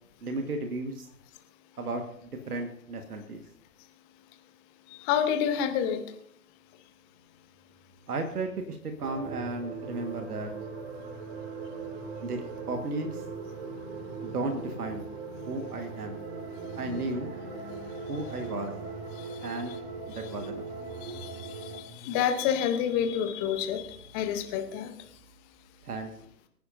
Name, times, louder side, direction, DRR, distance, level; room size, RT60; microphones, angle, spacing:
voice 1, 0.2-1.1 1.8-3.4 8.1-10.5 12.2-13.2 14.2-15.0 15.5-16.2 16.7-17.3 18.1-18.7 19.4-19.7 20.1-20.6 25.8-26.1, right 2 dB, 70° right, 5 dB, 1.7 m, -34 dB
voice 2, 4.9-6.0 19.2-19.8 20.1-20.3 21.0-24.9, left 8 dB, 15° left, 8 dB, 0.8 m, -29 dB
Motorcycle, 7.0-25.2, left 3 dB, 40° left, 3.6 m, -51 dB
sound 1, 9.0-21.8, right 4 dB, 40° right, 2.1 m, -40 dB
24.5 x 10.5 x 2.6 m, 0.65 s
figure-of-eight pair, 130°, 48 cm